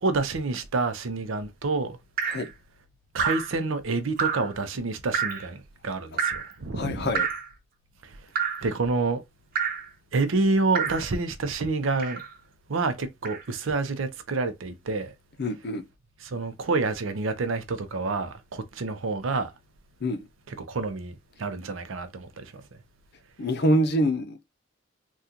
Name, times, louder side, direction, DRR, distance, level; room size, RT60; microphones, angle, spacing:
voice 1, 0.0-2.0 3.1-7.1 8.0-8.3 8.6-9.2 10.1-12.2 12.7-15.1 16.2-19.5 20.5-22.7, right 3 dB, 75° right, 0.6 m, -28 dB
Drip, 2.2-2.5 3.2-3.5 4.2-4.5 5.1-5.5 6.2-6.5 7.1-7.5 8.4-8.7 9.6-9.9 10.7-11.1 12.0-12.3 13.2-13.4, right 6 dB, 45° right, 0.9 m, -28 dB
voice 2, 6.8-7.3 15.4-15.8 20.0-20.3 23.4-24.5, equal, 55° left, 0.7 m, -25 dB
3.7 x 2.3 x 2.8 m
head